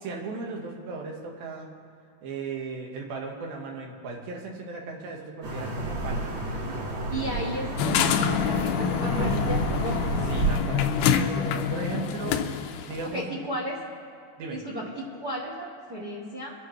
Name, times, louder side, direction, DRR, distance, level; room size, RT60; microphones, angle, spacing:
voice 1, 0.0-1.7 2.2-6.3 10.3-13.4 14.4-14.6, right 4 dB, 85° right, 1 dB, 3.3 m, -36 dB
sound 1, 5.4-10.5, right 2 dB, 70° right, 4.2 m, -30 dB
voice 2, 7.1-10.1 13.1-13.8 14.5-16.5, right 1 dB, 50° right, -4 dB, 1.1 m, -34 dB
sound 2, 7.8-13.1, left 7 dB, 80° left, 2.1 m, -26 dB
28.0 x 9.6 x 3.2 m, 2.3 s
omnidirectional pair, 4.1 m